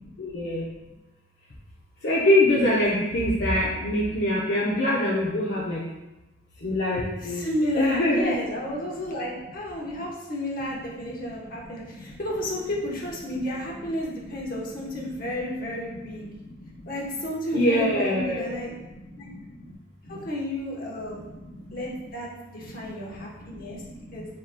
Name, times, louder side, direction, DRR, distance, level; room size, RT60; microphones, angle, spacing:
voice 1, 0.2-0.6 2.0-5.8 6.6-7.4 7.8-8.3 17.5-18.6, left 1 dB, 70° left, -6 dB, 0.7 m, -23 dB
voice 2, 7.2-16.3 16.9-18.7 19.1-19.3 20.1-21.2 21.7-23.8 24.1-24.3, left 1 dB, 50° left, -3 dB, 1.0 m, -32 dB
7.5 x 2.9 x 2.2 m, 1.0 s
head